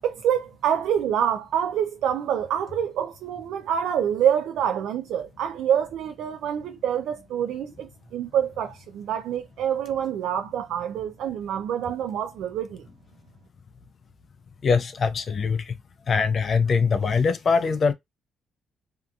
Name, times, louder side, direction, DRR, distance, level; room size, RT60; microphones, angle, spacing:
voice 1, 0.0-12.8, right 9 dB, 80° right, 0.3 m, -26 dB
voice 2, 14.6-15.7 16.1-17.9, left 5 dB, 50° left, 0.4 m, -22 dB
2.7 x 2.4 x 2.3 m
cardioid pair, 90°, 0 cm